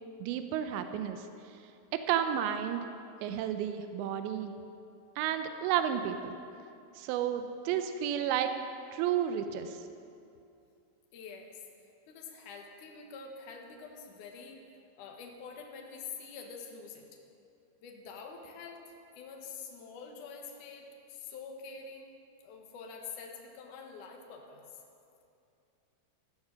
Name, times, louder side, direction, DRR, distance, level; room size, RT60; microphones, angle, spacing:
voice 1, 0.2-1.3 1.9-2.9 3.2-4.5 5.2-6.4 7.0-8.5 8.9-9.8, right 9 dB, 90° right, 8 dB, 2.5 m, -31 dB
voice 2, 11.1-11.6 12.1-17.2 17.8-22.1 22.4-24.6, left 5 dB, 80° left, 2 dB, 1.8 m, -46 dB
14.0 x 13.5 x 6.3 m, 2.6 s
omnidirectional pair, 5.9 m